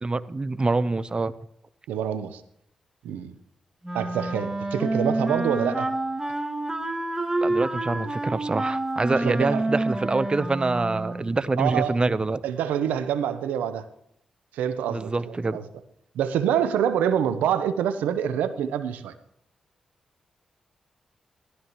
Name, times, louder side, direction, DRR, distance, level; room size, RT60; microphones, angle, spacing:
voice 1, 0.0-1.3 7.4-12.4 14.9-15.6, right 3 dB, 35° right, 15 dB, 0.9 m, -25 dB
voice 2, 1.9-2.4 3.0-3.3 3.9-5.9 9.2-9.6 11.6-11.9 12.4-13.9 14.5-15.6 16.1-19.1, right 9 dB, 85° right, 12 dB, 0.8 m, -26 dB
Wind instrument woodwind instrument, 3.8-11.4, right 2 dB, 15° right, 2.0 m, -28 dB
15.5 x 12.5 x 3.1 m, 0.71 s
hypercardioid pair, 40°, 3 cm